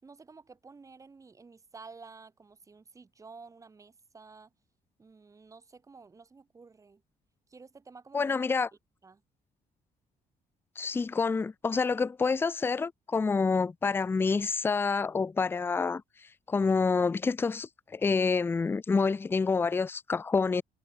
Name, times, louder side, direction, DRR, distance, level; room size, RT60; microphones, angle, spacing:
voice 1, 0.0-4.5 5.0-7.0 7.5-8.4 9.0-9.2, right 4 dB, 20° right, 6.4 m, -52 dB
voice 2, 8.1-8.7 10.8-16.0 16.5-20.6, left 4 dB, 15° left, 0.5 m, -27 dB
cardioid pair, 170°, 16 cm